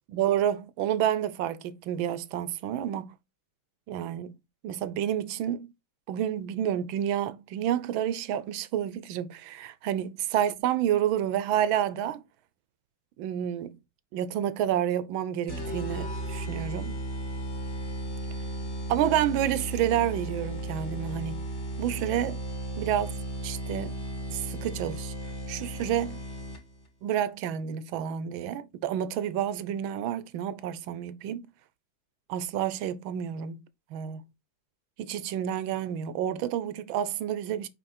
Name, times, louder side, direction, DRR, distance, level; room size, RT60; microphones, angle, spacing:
voice 1, 0.1-3.2 3.9-4.3 4.6-5.7 6.1-12.2 13.2-13.8 14.1-17.0 18.9-21.5 21.8-22.4 22.8-24.0 24.3-25.1 25.5-26.2 27.0-31.5 32.3-33.6 33.9-34.3 35.0-37.7, right 10 dB, 80° right, 1.5 m, -29 dB
sound 1, 15.5-26.9, right 1 dB, 35° left, 1.8 m, -35 dB
5.6 x 4.9 x 4.2 m
omnidirectional pair, 2.2 m